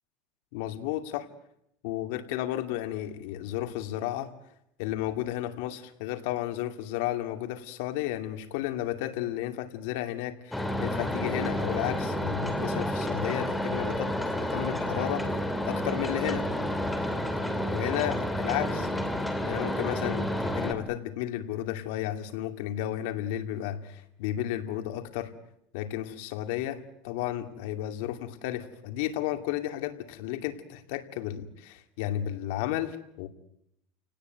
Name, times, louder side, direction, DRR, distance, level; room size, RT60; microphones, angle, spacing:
voice 1, 0.5-1.3 1.8-4.3 4.8-16.5 17.7-18.9 19.5-25.3 25.7-33.3, left 13 dB, 70° left, 7 dB, 2.5 m, -33 dB
sound 1, 10.5-20.7, left 1 dB, 5° left, 2.6 m, -30 dB
30.0 x 18.5 x 9.3 m, 0.77 s
supercardioid pair, 145°, 0 cm